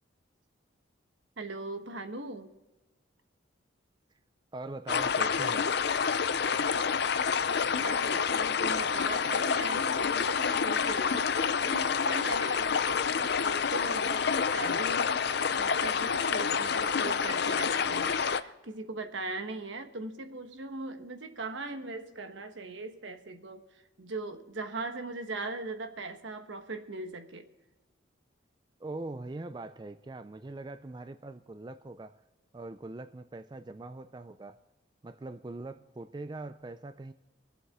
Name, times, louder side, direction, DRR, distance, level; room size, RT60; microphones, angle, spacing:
voice 1, 1.4-2.5 7.8-27.5, right 3 dB, 70° right, 7 dB, 1.2 m, -40 dB
voice 2, 4.5-5.7 28.8-32.2 32.5-34.6 35.0-37.1, right 2 dB, 20° right, 10 dB, 0.3 m, -42 dB
sound 1, 4.9-18.4, left 6 dB, 55° left, 0.5 m, -28 dB
24.0 x 8.0 x 3.6 m, 1.1 s
head